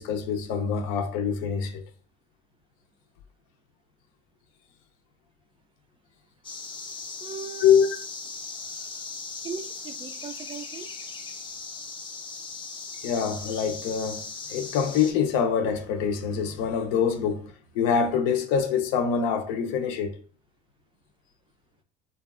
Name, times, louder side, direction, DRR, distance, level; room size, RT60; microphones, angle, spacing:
voice 1, 0.0-1.8 7.6-7.9 13.0-20.2, left 7 dB, 70° left, 0.5 m, -25 dB
sound 1, 6.4-15.1, left 4 dB, 25° left, 0.6 m, -38 dB
voice 2, 7.2-7.7 9.4-11.1, right 5 dB, 25° right, 0.3 m, -38 dB
2.7 x 2.2 x 2.3 m
supercardioid pair, 90°, 21 cm